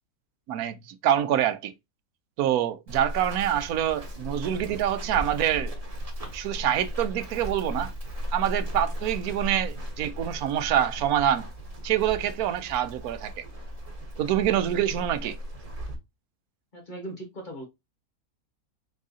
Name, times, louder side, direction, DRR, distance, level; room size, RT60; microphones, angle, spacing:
voice 1, 0.5-1.7 2.4-5.7 6.3-7.9 8.3-11.5 11.8-13.5 14.2-15.4, right 11 dB, 90° right, 1.1 m, -26 dB
Run, 2.9-16.0, equal, 30° right, 0.9 m, -36 dB
voice 2, 16.7-17.7, right 1 dB, 35° left, 1.2 m, -39 dB
4.0 x 3.7 x 2.6 m
omnidirectional pair, 1.5 m